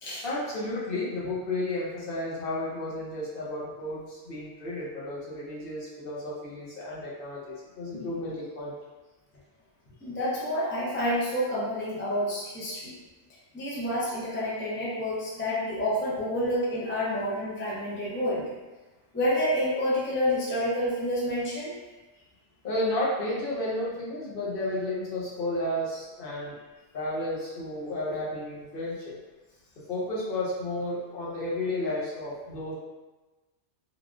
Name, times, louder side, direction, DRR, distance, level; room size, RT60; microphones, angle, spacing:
voice 1, 0.2-8.7 22.6-26.6 26.9-29.1 29.9-32.7, left 1 dB, 55° left, -7 dB, 0.8 m, -32 dB
voice 2, 10.0-12.9 13.5-18.4 19.1-21.7, equal, 15° left, -7 dB, 0.4 m, -28 dB
3.3 x 2.3 x 2.4 m, 1.2 s
omnidirectional pair, 1.2 m